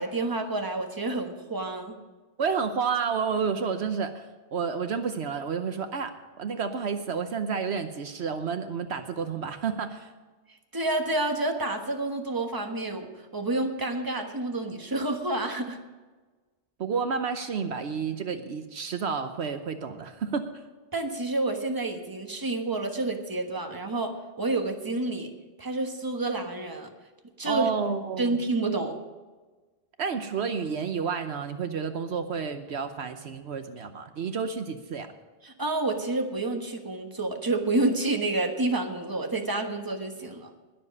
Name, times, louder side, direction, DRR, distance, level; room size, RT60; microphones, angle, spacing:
voice 1, 0.0-1.9 10.7-15.8 20.9-25.3 25.6-26.9 27.4-27.7 28.2-29.0 35.4-40.5, right 2 dB, 20° right, 4 dB, 1.4 m, -29 dB
voice 2, 2.4-4.3 4.5-10.1 16.8-20.6 27.4-28.4 30.0-35.1, right 6 dB, 70° right, 8 dB, 1.1 m, -30 dB
20.5 x 7.6 x 5.4 m, 1.3 s
omnidirectional pair, 1.2 m